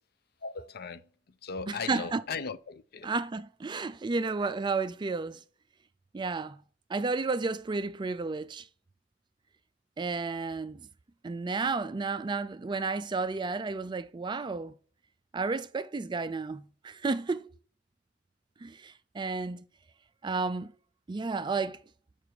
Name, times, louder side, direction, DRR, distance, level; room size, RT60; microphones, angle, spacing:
voice 1, 0.4-1.0 1.4-3.1, left 5 dB, 55° left, 0.5 m, -37 dB
voice 2, 1.7-2.2 3.0-5.4 6.1-6.6 6.9-8.7 10.0-10.9 11.2-14.7 15.3-17.5 18.6-19.6 20.2-20.7 21.1-21.8, right 4 dB, 25° right, 0.4 m, -32 dB
6.6 x 5.9 x 4.6 m
head